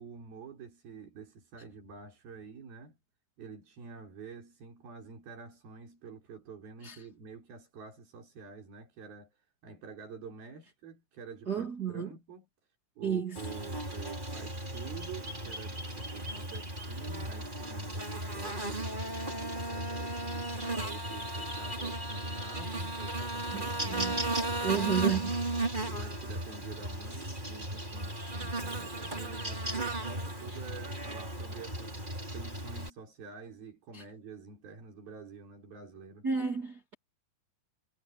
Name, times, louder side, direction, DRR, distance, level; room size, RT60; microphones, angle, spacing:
voice 1, 0.0-3.0 3.4-12.5 13.0-25.2 25.8-36.3, right 5 dB, 70° right, 7.4 m, -48 dB
voice 2, 11.5-12.1 13.0-13.4 23.5-24.1 24.6-25.3 33.9-34.0 36.2-36.9, right 7 dB, 30° right, 2.0 m, -32 dB
Buzz, 13.4-32.9, right 1 dB, 10° right, 5.2 m, -35 dB
omnidirectional pair, 4.5 m